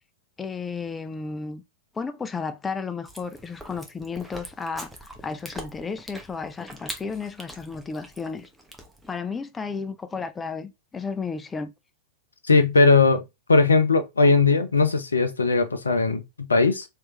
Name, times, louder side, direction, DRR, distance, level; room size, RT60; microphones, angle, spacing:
voice 1, 0.4-1.6 1.9-8.5 9.1-11.7, left 5 dB, 15° left, 0.4 m, -33 dB
Chewing mastication, 3.0-9.2, right 1 dB, 5° right, 0.9 m, -42 dB
voice 2, 12.5-13.2 13.5-16.9, left 3 dB, 80° left, 0.7 m, -19 dB
3.2 x 3.0 x 3.1 m
figure-of-eight pair, 95°, 0 cm